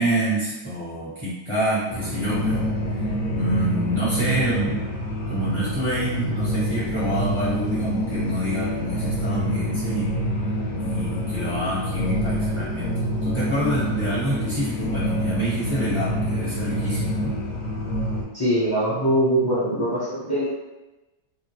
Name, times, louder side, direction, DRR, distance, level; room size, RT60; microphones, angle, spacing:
voice 1, 0.0-2.7 3.3-4.8 5.3-10.1 10.8-17.3, right 1 dB, 20° right, -12 dB, 1.1 m, -27 dB
sound 1, 1.9-18.2, equal, 75° left, 1.3 m, -26 dB
voice 2, 18.3-20.5, right 1 dB, 35° left, -11 dB, 0.3 m, -22 dB
2.8 x 2.7 x 2.8 m, 1.0 s
omnidirectional pair, 1.9 m